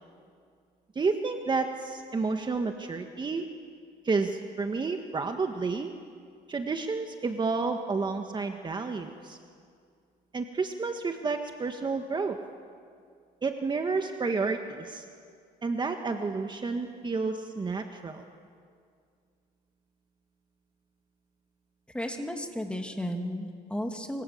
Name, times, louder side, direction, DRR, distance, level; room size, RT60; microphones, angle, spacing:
voice 1, 1.0-3.5 4.0-5.9 6.5-9.4 10.3-12.4 13.4-15.0 15.6-18.2, right 4 dB, 25° right, 5 dB, 1.6 m, -30 dB
voice 2, 21.9-24.2, equal, 5° left, 4 dB, 2.8 m, -34 dB
26.0 x 25.0 x 8.0 m, 2.2 s
cardioid pair, 110°, 17 cm